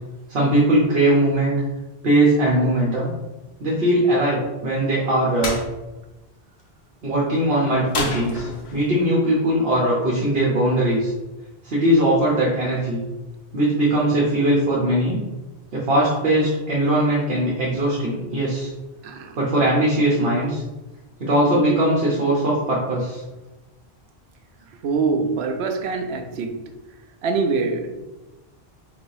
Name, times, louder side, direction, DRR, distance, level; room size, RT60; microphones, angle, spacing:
voice 1, 0.3-1.6 2.0-3.1 3.6-5.6 7.0-11.1 11.6-13.0 13.5-15.2 15.7-18.7 19.3-20.6 21.2-23.2, right 1 dB, 65° right, -5 dB, 1.2 m, -20 dB
sound 1, 5.4-5.7 7.9-8.9, left 3 dB, 80° left, 1.1 m, -28 dB
voice 2, 19.0-19.4 24.8-26.7 27.2-28.0, right 4 dB, 85° right, 6 dB, 0.8 m, -24 dB
3.9 x 2.7 x 4.7 m, 1.1 s
omnidirectional pair, 1.1 m